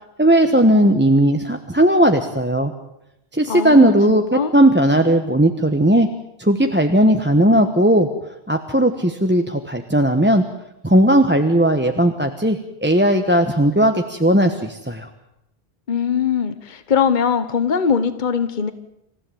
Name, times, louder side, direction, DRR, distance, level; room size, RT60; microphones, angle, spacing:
voice 1, 0.2-2.7 3.3-6.1 6.4-8.1 8.5-10.4 10.8-15.1, right 1 dB, 10° right, 6 dB, 1.2 m, -16 dB
voice 2, 3.5-4.5 15.9-18.7, left 7 dB, 50° left, 11 dB, 1.2 m, -21 dB
27.0 x 15.5 x 9.2 m, 0.85 s
omnidirectional pair, 1.1 m